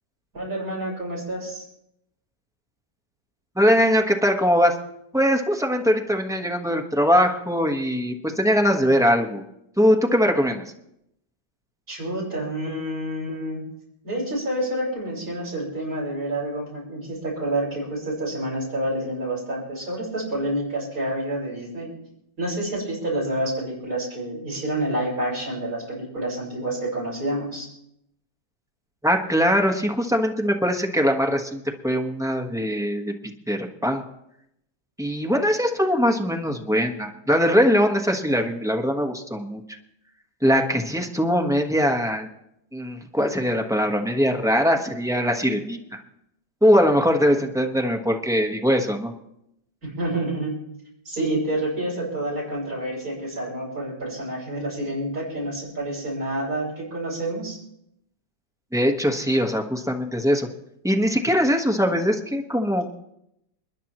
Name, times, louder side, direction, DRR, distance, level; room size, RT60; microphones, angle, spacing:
voice 1, 0.3-1.6 11.9-13.7 14.0-21.9 22.4-27.7 49.8-50.6 51.0-57.6, right 1 dB, 55° right, -5 dB, 6.8 m, -28 dB
voice 2, 3.6-4.7 5.1-9.4 9.8-10.6 29.0-33.1 33.5-34.0 35.0-39.6 40.4-42.3 42.7-46.0 46.6-49.1 58.7-60.5 60.8-62.9, equal, ahead, 1 dB, 0.9 m, -21 dB
29.0 x 10.0 x 3.0 m, 0.79 s
omnidirectional pair, 1.9 m